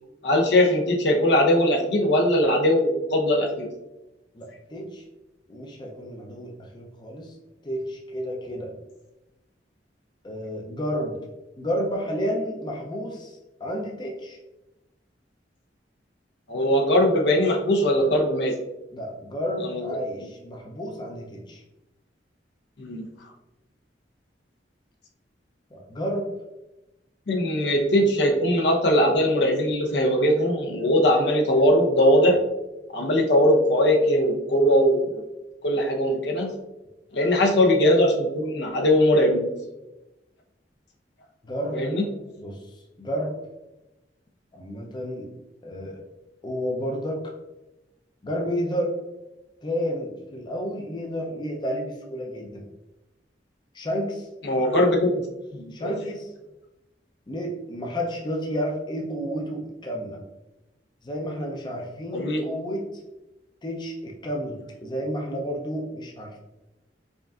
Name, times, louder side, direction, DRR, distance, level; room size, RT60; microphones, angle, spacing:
voice 1, 0.2-3.7 16.5-18.5 19.6-19.9 22.8-23.0 27.3-32.4 32.9-35.2 35.6-36.6 37.1-39.6 41.7-42.1 54.4-55.2 55.5-55.9 62.1-62.4, left 1 dB, 75° left, 1 dB, 0.7 m, -20 dB
voice 2, 4.3-5.0 5.5-7.4 7.6-8.7 10.2-11.2 11.6-14.4 18.9-21.6 25.7-26.3 41.4-41.8 42.4-42.6 43.0-43.3 44.5-45.3 45.6-46.0 46.4-47.2 48.2-49.0 49.6-52.7 53.7-54.3 55.7-56.3 57.3-60.2 61.0-62.9 63.6-66.4, equal, 25° left, -1 dB, 0.5 m, -31 dB
5.0 x 2.5 x 2.4 m, 0.97 s
head